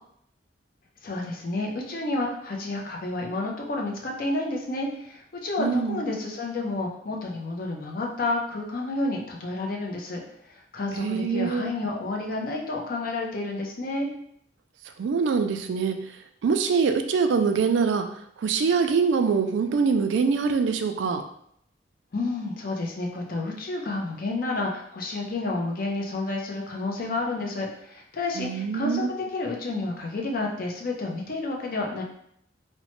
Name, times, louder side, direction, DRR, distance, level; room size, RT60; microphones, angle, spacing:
voice 1, 1.0-10.2 10.5-14.1 22.1-32.0, left 2 dB, 50° left, 0 dB, 0.5 m, -30 dB
voice 2, 5.6-6.0 10.9-11.7 15.0-16.0 16.4-18.0 18.4-21.2 28.4-29.1, right 5 dB, 75° right, 6 dB, 0.3 m, -24 dB
2.9 x 2.1 x 3.0 m, 0.70 s
head